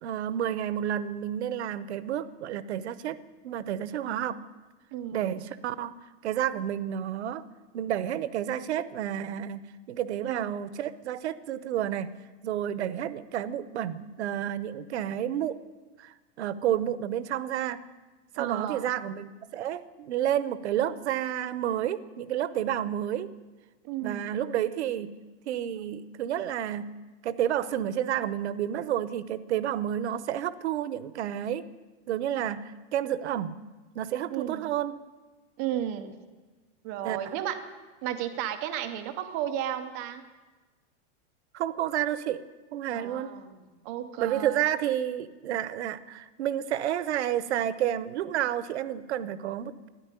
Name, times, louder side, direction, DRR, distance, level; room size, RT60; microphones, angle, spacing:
voice 1, 0.0-3.2 3.4-4.4 5.1-5.9 6.2-7.4 7.7-12.1 12.4-15.6 16.0-17.8 18.3-23.3 24.0-25.1 25.5-26.9 27.2-31.6 32.1-33.5 33.9-34.9 37.0-37.3 41.5-42.4 42.7-43.3 44.2-49.9, right 10 dB, 65° right, 16 dB, 0.9 m, -30 dB
voice 2, 4.9-5.2 10.2-10.5 18.4-18.9 23.8-24.2 34.3-34.7 35.6-36.2 36.8-37.6 38.0-40.2 42.9-43.6 43.8-44.6, right 11 dB, 15° right, 9 dB, 0.4 m, -33 dB
13.5 x 11.0 x 9.7 m, 1.3 s
supercardioid pair, 175°, 36 cm